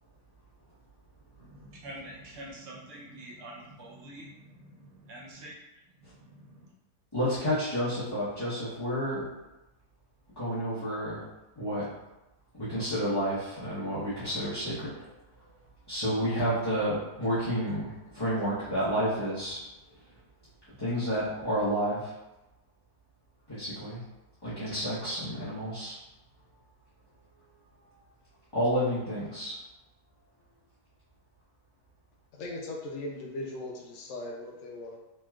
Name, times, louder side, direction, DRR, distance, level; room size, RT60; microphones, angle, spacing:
voice 1, 1.4-6.7, right 1 dB, 60° right, -4 dB, 0.8 m, -47 dB
voice 2, 7.1-9.3 10.4-11.2 11.6-11.9 12.5-15.1 15.9-19.6 20.8-22.1 23.5-24.0 24.4-26.0 28.5-29.5, equal, 20° left, -14 dB, 0.6 m, -30 dB
voice 3, 32.3-35.0, left 1 dB, 70° left, 0 dB, 0.8 m, -39 dB
3.2 x 2.9 x 2.3 m, 0.98 s
omnidirectional pair, 1.7 m